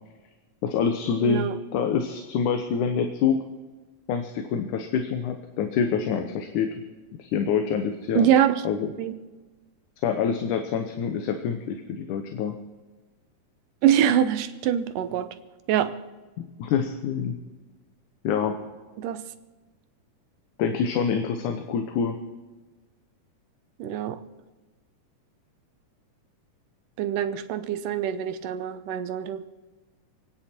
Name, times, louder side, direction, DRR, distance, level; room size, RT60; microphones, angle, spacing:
voice 1, 0.6-3.4 4.1-6.7 7.2-8.3 8.6-8.9 10.0-12.6 16.4-17.4 18.2-18.6 20.6-22.2, left 6 dB, 75° left, 6 dB, 2.4 m, -26 dB
voice 2, 1.2-1.5 8.2-8.6 9.0-9.1 13.8-15.3 15.7-15.9 19.0-19.2 23.8-24.2 27.0-29.4, right 10 dB, 85° right, 10 dB, 2.5 m, -24 dB
28.5 x 9.7 x 4.5 m, 1.3 s
omnidirectional pair, 3.7 m